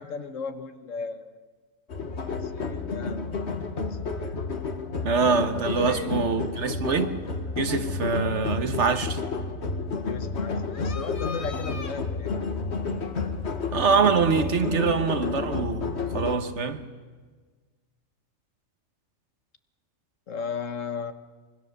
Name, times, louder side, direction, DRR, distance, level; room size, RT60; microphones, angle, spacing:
voice 1, 0.0-1.4 2.0-3.3 3.9-4.6 5.5-6.4 10.0-12.5 20.3-21.1, left 5 dB, 80° left, 1.5 m, -36 dB
sound 1, 1.9-16.4, left 4 dB, 60° left, 1.7 m, -31 dB
voice 2, 5.0-7.2 7.6-9.2 13.7-16.9, right 5 dB, 65° right, 1.5 m, -24 dB
25.0 x 23.5 x 6.7 m
omnidirectional pair, 1.3 m